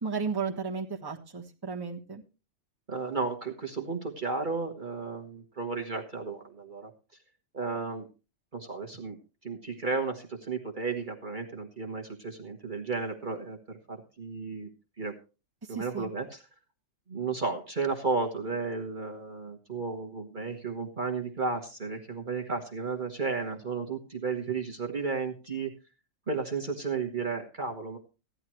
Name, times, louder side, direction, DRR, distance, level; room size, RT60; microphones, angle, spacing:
voice 1, 0.0-2.2 15.7-16.1, right 5 dB, 15° right, -1 dB, 1.4 m, -34 dB
voice 2, 2.9-6.9 7.5-8.1 8.5-9.2 9.4-14.7 15.0-15.1 15.7-16.4 17.1-25.7 26.3-28.0, right 4 dB, 35° right, 2 dB, 1.5 m, -33 dB
15.5 x 10.5 x 3.1 m, 0.32 s
omnidirectional pair, 1.5 m